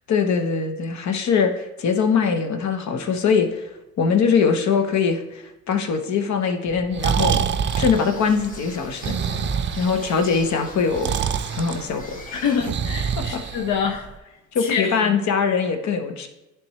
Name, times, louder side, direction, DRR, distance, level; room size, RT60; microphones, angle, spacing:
voice 1, 0.1-3.7 4.0-7.4 7.7-9.1 9.8-11.1 11.5-12.2 13.3-13.4 14.5-16.3, left 5 dB, 65° left, 6 dB, 1.0 m, -22 dB
Breathing, 6.7-14.1, right 7 dB, 40° right, 0.4 m, -26 dB
sound 1, 7.7-12.7, left 1 dB, 25° left, 1.5 m, -42 dB
voice 2, 12.3-14.1 14.6-15.2, left 6 dB, 90° left, 4 dB, 0.7 m, -26 dB
10.5 x 3.4 x 3.1 m, 1.0 s
cardioid pair, 90°, 30 cm